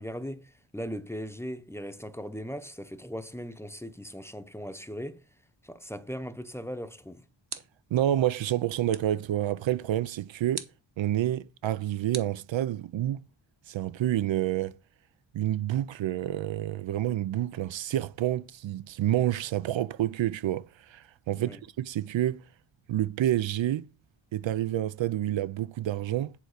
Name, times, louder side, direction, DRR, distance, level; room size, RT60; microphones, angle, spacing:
voice 1, 0.0-5.2 5.6-7.3 21.4-21.6, equal, 5° left, 0.7 m, -38 dB
sound 1, 7.5-8.0 8.9-9.3 10.5-10.9 12.1-13.0, right 6 dB, 55° right, 1.2 m, -43 dB
voice 2, 7.9-10.7 11.0-13.2 13.7-14.8 15.3-22.4 22.9-23.9 24.3-26.3, right 12 dB, 70° right, 0.5 m, -28 dB
10.5 x 4.6 x 6.5 m
wide cardioid pair, 125°, 47 cm